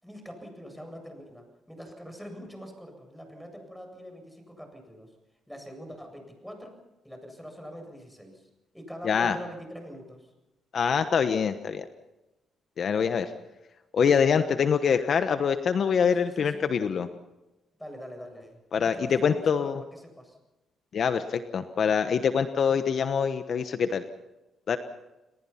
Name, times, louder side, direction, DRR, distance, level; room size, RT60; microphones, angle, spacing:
voice 1, 0.0-5.1 5.5-6.8 7.0-10.3 16.0-16.7 17.8-20.4, equal, ahead, 4 dB, 7.8 m, -44 dB
voice 2, 9.0-9.4 10.7-11.9 12.8-13.3 13.9-17.1 18.7-19.8 20.9-24.0 24.7-24.8, left 6 dB, 55° left, 9 dB, 1.1 m, -25 dB
29.5 x 19.5 x 5.8 m, 1.0 s
cardioid pair, 90°, 0 cm